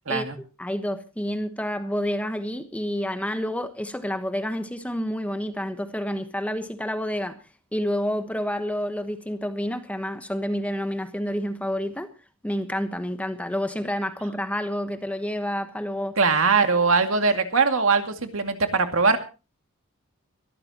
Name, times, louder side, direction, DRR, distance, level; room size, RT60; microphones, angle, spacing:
voice 1, 0.1-7.4 7.7-12.1 12.4-16.2 16.5-16.6, equal, 5° left, 1.1 m, -29 dB
voice 2, 16.2-19.2, right 4 dB, 65° right, 2.3 m, -21 dB
23.5 x 13.5 x 2.9 m
head